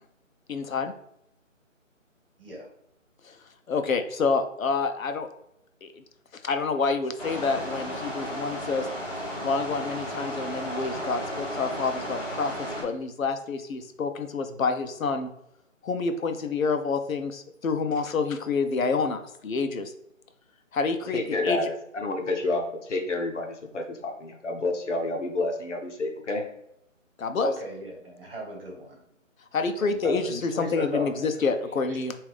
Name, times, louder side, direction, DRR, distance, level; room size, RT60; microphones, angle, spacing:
voice 1, 0.5-0.9 3.2-3.4 3.7-5.3 5.8-6.0 6.3-8.9 9.4-15.3 15.8-19.9 20.7-21.7 27.2-27.5 29.5-32.2, left 4 dB, 85° left, 8 dB, 0.7 m, -28 dB
sound 1, 7.2-12.8, equal, 15° left, 1.5 m, -34 dB
voice 2, 21.1-26.4, left 2 dB, 60° left, 3 dB, 0.9 m, -29 dB
voice 3, 27.4-29.0 29.8-31.1, equal, 45° right, -1 dB, 1.4 m, -35 dB
4.8 x 2.6 x 3.5 m, 0.78 s
figure-of-eight pair, 165°, 40 cm